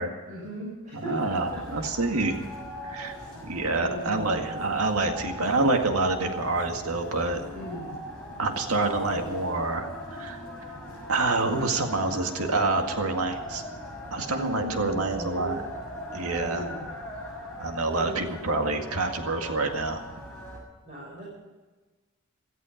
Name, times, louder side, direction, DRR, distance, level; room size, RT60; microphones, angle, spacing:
voice 1, 0.2-1.9 3.1-3.4 3.8-4.4 7.5-8.0 14.3-15.5 16.4-16.9 17.9-18.3 20.9-21.2, equal, 35° right, -6 dB, 6.5 m, -37 dB
voice 2, 0.9-2.4 2.8-3.2 3.4-7.4 8.4-10.4 11.1-13.6 14.1-15.6 16.1-16.6 17.6-20.0, right 3 dB, 90° right, 4 dB, 2.0 m, -27 dB
sound 1, 1.1-20.6, equal, 5° left, 6.8 m, -39 dB
17.0 x 15.0 x 5.2 m, 1.3 s
head